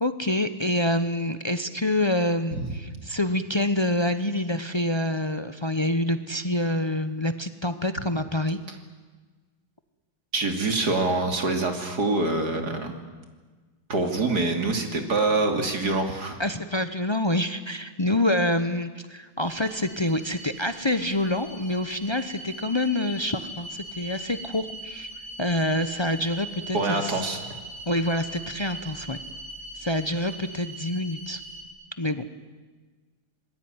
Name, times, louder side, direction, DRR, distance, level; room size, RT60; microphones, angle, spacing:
voice 1, 0.0-8.6 16.4-25.1 25.4-27.2 27.9-29.2 29.7-31.4 32.0-32.3, left 1 dB, 45° left, 10 dB, 0.3 m, -26 dB
voice 2, 10.3-12.9 13.9-16.4 26.7-27.6, right 2 dB, 50° right, 5 dB, 3.3 m, -25 dB
sound 1, 19.5-31.6, right 1 dB, 70° right, 4.9 m, -40 dB
26.5 x 21.0 x 9.7 m, 1.4 s
omnidirectional pair, 2.2 m